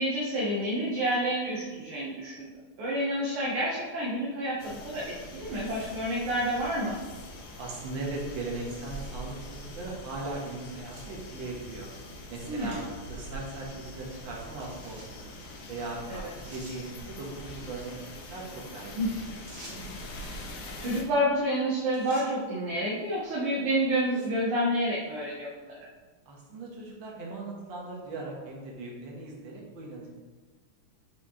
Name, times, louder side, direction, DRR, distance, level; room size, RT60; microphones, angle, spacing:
voice 1, 0.0-2.5 2.8-7.0 12.5-12.9 19.0-19.1 19.7-25.8, equal, 85° right, -5 dB, 1.9 m, -29 dB
sound 1, 4.6-21.0, equal, 80° left, 1.7 m, -43 dB
voice 2, 7.6-11.9 12.3-12.8 13.1-15.3 15.7-18.9 26.3-30.1, right 2 dB, 65° right, -2 dB, 1.9 m, -39 dB
sound 2, 8.2-9.2 10.0-10.1 10.9-11.1 11.5-11.6 12.7-12.8 13.2-13.3 14.6-15.2 16.0-16.1 16.4-16.8 19.5-20.0 21.4-21.6 21.9-22.3 23.1-23.3 24.0-24.4, right 1 dB, 30° right, 1.2 m, -51 dB
5.8 x 4.5 x 3.6 m, 1.3 s
omnidirectional pair, 2.3 m